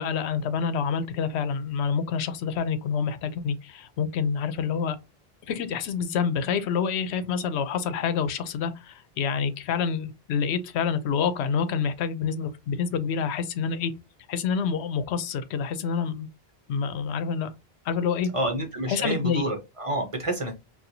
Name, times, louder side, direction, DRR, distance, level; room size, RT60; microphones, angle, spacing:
voice 1, 0.0-5.0 5.5-13.9 14.3-16.3 16.7-17.5 17.8-18.3 18.9-19.4, left 6 dB, 90° left, 0.8 m, -27 dB
voice 2, 18.3-20.5, right 1 dB, 35° right, 0.7 m, -28 dB
4.2 x 2.3 x 2.6 m
omnidirectional pair, 1.1 m